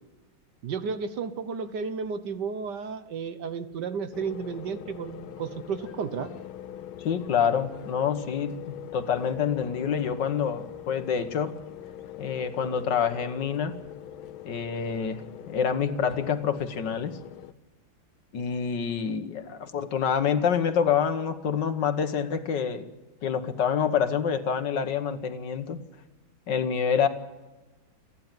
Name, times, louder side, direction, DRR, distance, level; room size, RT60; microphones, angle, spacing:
voice 1, 0.6-6.3, right 5 dB, 60° right, 11 dB, 1.5 m, -33 dB
sound 1, 4.1-17.5, left 11 dB, 90° left, 1.7 m, -43 dB
voice 2, 7.0-8.5 8.9-11.6 12.2-13.7 14.5-17.2 18.3-22.9 23.2-25.8 26.5-27.1, left 7 dB, 65° left, 9 dB, 1.8 m, -27 dB
28.5 x 10.5 x 9.0 m, 1.1 s
omnidirectional pair, 2.2 m